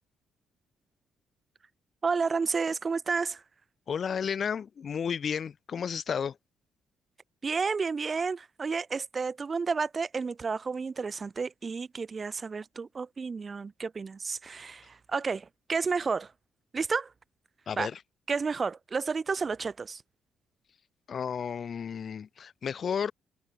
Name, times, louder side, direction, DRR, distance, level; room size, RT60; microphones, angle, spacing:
voice 1, 2.0-3.4 7.4-16.3 16.7-17.1 17.8-17.9 18.3-20.0, right 5 dB, 35° right, 0.4 m, -31 dB
voice 2, 3.9-6.4 17.7-18.0 21.1-23.1, left 7 dB, 50° left, 0.6 m, -32 dB
cardioid pair, 90°, 0 cm